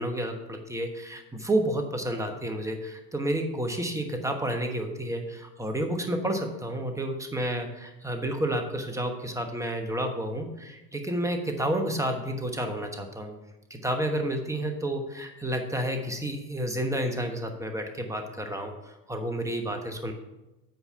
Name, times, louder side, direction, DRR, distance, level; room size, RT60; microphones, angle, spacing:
voice 1, 0.0-13.3 13.7-20.1, right 1 dB, 5° right, 4 dB, 1.1 m, -30 dB
8.1 x 4.9 x 5.6 m, 0.99 s
hypercardioid pair, 80°, 46 cm